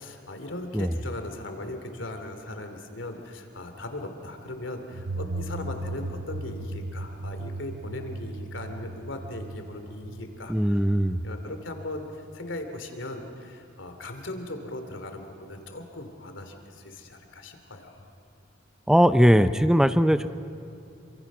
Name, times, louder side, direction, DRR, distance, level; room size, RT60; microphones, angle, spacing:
voice 1, 0.0-10.8 11.2-18.1, left 1 dB, 90° left, 6 dB, 2.7 m, -38 dB
sound 1, 4.9-11.5, right 2 dB, 90° right, 0.8 m, -37 dB
voice 2, 10.5-11.2 18.9-20.3, equal, 5° right, 12 dB, 0.6 m, -20 dB
28.0 x 25.0 x 6.1 m, 2.7 s
head